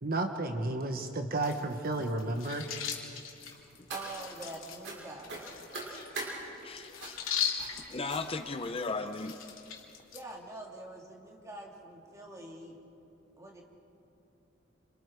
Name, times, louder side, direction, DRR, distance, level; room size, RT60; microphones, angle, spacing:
voice 1, 0.0-2.7, right 2 dB, 45° right, 5 dB, 1.3 m, -32 dB
sound 1, 1.4-10.2, left 8 dB, 85° left, 3.1 m, -40 dB
sound 2, 3.5-4.5 4.8-5.0 5.3-6.3 7.0-7.3 7.6-7.8 8.1-8.5 9.2-9.3 9.7-9.8 10.1-10.2, right 3 dB, 65° right, 6.4 m, -42 dB
voice 2, 3.9-5.5 10.1-12.8 13.4-13.6, right 2 dB, 15° right, -1 dB, 3.1 m, -45 dB
voice 3, 6.6-7.1 7.9-9.4, left 3 dB, 30° left, 8 dB, 0.7 m, -36 dB
28.5 x 27.5 x 4.8 m, 2.8 s
head